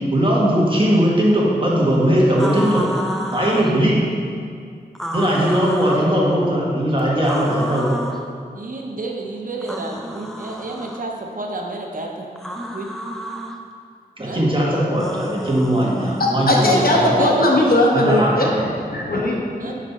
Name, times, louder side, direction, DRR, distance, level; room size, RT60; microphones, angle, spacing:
voice 1, 0.1-2.8 3.3-4.0 5.1-8.0 14.2-17.0 17.9-18.6, equal, 30° right, -4 dB, 1.4 m, -19 dB
sound 1, 2.4-3.8 4.9-6.1 7.2-8.2 9.6-11.0 12.4-13.6 15.0-16.3, equal, ahead, 0.5 m, -31 dB
voice 2, 8.5-12.3 12.7-12.9 14.2-14.4 16.1-16.2 16.6-17.6 19.6-19.7, right 2 dB, 60° right, 1 dB, 0.7 m, -29 dB
voice 3, 16.2-18.5 18.8-19.7, left 1 dB, 65° left, -2 dB, 1.0 m, -18 dB
5.3 x 5.1 x 4.1 m, 2.2 s
wide cardioid pair, 65°, 16 cm